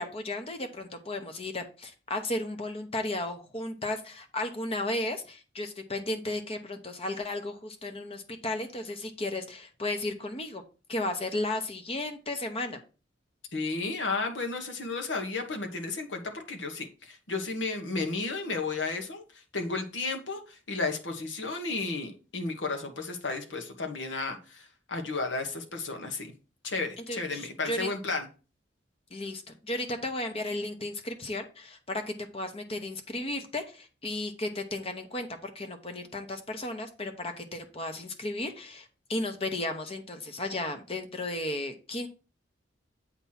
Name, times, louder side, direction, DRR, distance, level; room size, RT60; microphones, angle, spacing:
voice 1, 0.0-10.6 10.9-12.8 27.1-27.9 29.1-32.0 32.3-42.1, left 2 dB, 30° left, 0.9 m, -34 dB
voice 2, 13.5-26.3 26.6-28.3, left 3 dB, 85° left, 1.3 m, -33 dB
8.1 x 3.0 x 5.7 m
head